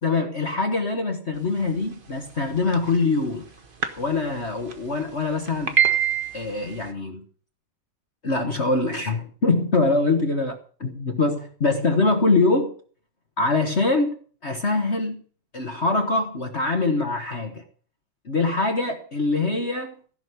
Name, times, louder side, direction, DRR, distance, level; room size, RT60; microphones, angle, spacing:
voice 1, 0.0-3.5 4.0-5.8 6.3-7.2 8.2-12.7 13.4-15.2 15.5-17.6 18.2-19.9, left 3 dB, 35° left, 4 dB, 1.6 m, -23 dB
sound 1, 2.5-3.0 3.8-3.9 4.2-4.3 4.7-4.8 5.5-6.8, right 8 dB, 30° right, 1.3 m, -22 dB
15.5 x 6.5 x 9.4 m, 0.43 s
omnidirectional pair, 2.2 m